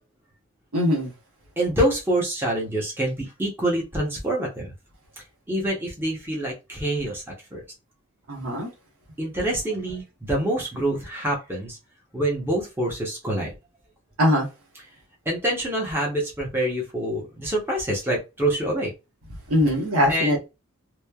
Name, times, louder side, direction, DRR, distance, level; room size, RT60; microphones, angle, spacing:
voice 1, 0.7-1.1 8.3-8.7 14.2-14.5 19.5-20.5, left 1 dB, 70° right, 1.0 m, -21 dB
voice 2, 1.6-4.7 5.5-7.2 7.5-7.6 9.2-11.8 12.1-13.5 15.3-18.9 20.1-20.4, right 1 dB, 10° right, 0.7 m, -26 dB
3.0 x 2.1 x 2.2 m
head